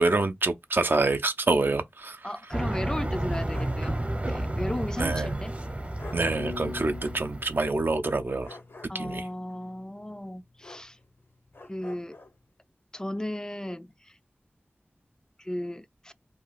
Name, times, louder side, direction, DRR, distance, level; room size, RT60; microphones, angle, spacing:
voice 1, 0.0-2.3 5.0-5.4 6.1-8.5 8.9-9.3, right 3 dB, 60° right, 0.5 m, -26 dB
voice 2, 2.2-4.0 4.3-5.6 8.9-11.0 11.7-12.2 12.9-14.2 15.4-16.1, left 1 dB, 15° left, 0.3 m, -35 dB
sound 1, 2.5-7.6, right 1 dB, 35° right, 0.8 m, -31 dB
sound 2, 3.3-3.9 4.2-4.3 5.6-5.7 6.0-6.3 8.4-9.2 10.6-11.2 11.5-12.4, left 2 dB, 85° left, 1.0 m, -47 dB
sound 3, 6.4-9.3, left 4 dB, 65° left, 0.7 m, -42 dB
2.8 x 2.3 x 3.8 m
wide cardioid pair, 50°, 4 cm